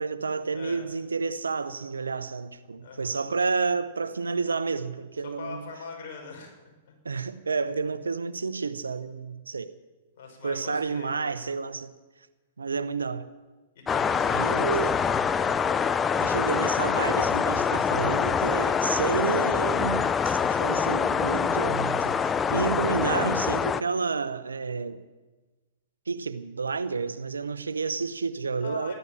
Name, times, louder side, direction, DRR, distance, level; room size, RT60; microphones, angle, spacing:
voice 1, 0.0-5.6 7.0-9.7 10.4-11.9 12.6-13.3 14.3-15.0 16.2-25.0 26.1-28.9, right 4 dB, 85° right, 1.0 m, -30 dB
voice 2, 0.5-0.9 2.8-3.2 5.2-6.6 6.8-6.9 10.2-11.4 13.7-15.1 28.6-28.9, left 5 dB, 55° left, 5.6 m, -42 dB
sound 1, 13.9-23.8, left 6 dB, 20° left, 0.6 m, -25 dB
15.0 x 12.0 x 7.3 m
hypercardioid pair, 110°, 0 cm